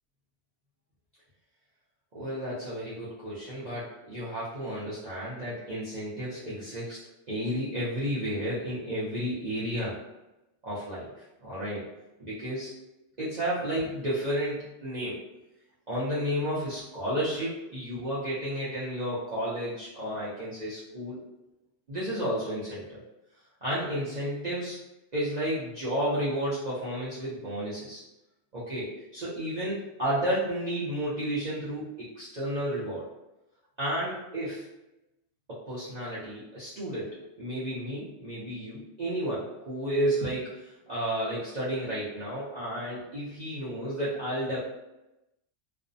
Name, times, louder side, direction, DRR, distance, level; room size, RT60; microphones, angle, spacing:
voice 1, 2.1-7.0 7.3-10.0 10.6-11.1 11.4-11.8 12.2-12.7 13.2-15.2 15.9-21.2 21.9-23.0 23.6-24.8 25.1-28.0 28.5-33.0 33.8-34.7 35.5-44.6, equal, 45° right, -10 dB, 0.6 m, -32 dB
2.5 x 2.1 x 2.5 m, 0.95 s
omnidirectional pair, 1.3 m